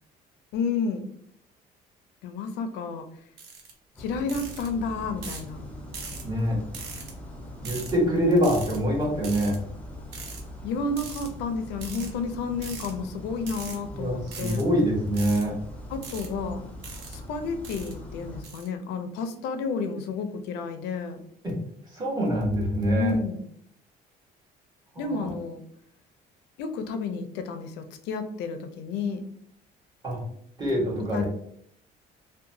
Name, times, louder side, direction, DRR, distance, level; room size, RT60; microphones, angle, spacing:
voice 1, 0.5-1.1 2.2-3.1 4.0-5.7 10.6-14.6 15.9-16.7 17.1-21.2 22.9-23.4 25.0-25.6 26.6-29.3 31.1-31.2, left 4 dB, 85° left, 8 dB, 0.4 m, -31 dB
sound 1, 3.4-3.7 4.3-4.7 5.2-5.5 5.9-6.2 6.7-7.1 7.6-7.9 8.4-8.8 9.2-9.6 10.1-10.4 11.0-11.3 11.8-12.1 12.6-12.9 13.4-13.8 14.3-14.6 15.2-15.4 16.0-16.3 16.8-17.2 17.6-17.9 18.4-18.7, right 5 dB, 90° right, 0.6 m, -40 dB
sound 2, 4.0-18.4, left 1 dB, 10° left, 0.5 m, -41 dB
voice 2, 6.2-6.6 7.6-9.6 13.9-15.5 21.4-21.5 21.9-23.1 24.9-25.3 30.0-30.2 30.6-31.3, equal, 25° right, -3 dB, 1.1 m, -25 dB
2.8 x 2.2 x 2.6 m, 0.67 s
cardioid pair, 110°, 17 cm